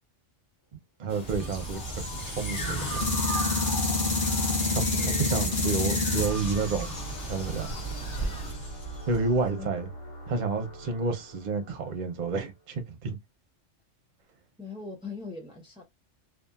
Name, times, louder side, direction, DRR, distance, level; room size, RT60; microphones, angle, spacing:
voice 1, 0.7-3.1 4.7-7.0 7.3-7.7 8.2-8.4 9.1-9.9 10.3-13.2, right 4 dB, 45° right, 0.7 m, -30 dB
sound 1, 1.1-8.5, equal, 65° left, 1.5 m, -38 dB
sound 2, 1.3-9.4, left 2 dB, 45° left, 1.0 m, -29 dB
voice 2, 5.0-5.4 9.5-9.7 14.6-15.8, left 3 dB, 5° right, 0.4 m, -41 dB
sound 3, 6.7-12.8, equal, 90° left, 1.4 m, -45 dB
2.8 x 2.5 x 2.3 m
omnidirectional pair, 1.3 m